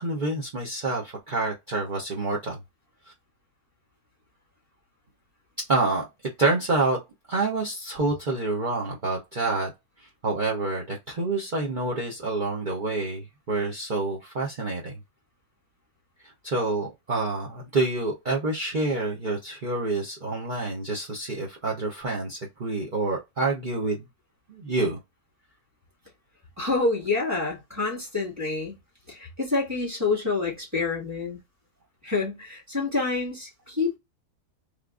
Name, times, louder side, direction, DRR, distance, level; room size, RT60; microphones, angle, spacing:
voice 1, 0.0-2.6 5.7-6.1 6.4-7.0 7.3-9.7 10.0-15.0 16.2-24.1 24.5-25.0, right 3 dB, 40° right, 0.8 m, -27 dB
voice 2, 26.6-28.8 29.1-31.4 32.0-34.0, left 3 dB, 10° right, 1.8 m, -27 dB
3.5 x 3.2 x 2.4 m
omnidirectional pair, 1.6 m